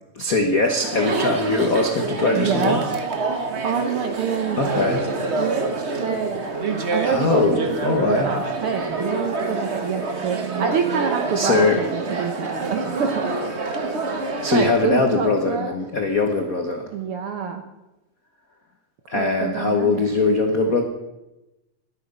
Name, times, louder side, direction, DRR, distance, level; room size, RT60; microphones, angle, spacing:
voice 1, 0.1-2.8 4.6-5.0 7.0-8.3 11.3-11.8 14.4-16.9 19.1-20.8, left 3 dB, 65° left, 4 dB, 0.8 m, -21 dB
Chatter, 0.6-14.8, right 3 dB, 85° right, 0.6 m, -27 dB
voice 2, 2.3-2.8 3.6-4.9 5.4-5.7 6.0-6.4 6.9-13.3 14.5-15.7 16.9-17.6 19.1-20.0, right 6 dB, 60° right, 6 dB, 1.5 m, -26 dB
21.0 x 9.2 x 5.4 m, 0.97 s
omnidirectional pair, 3.5 m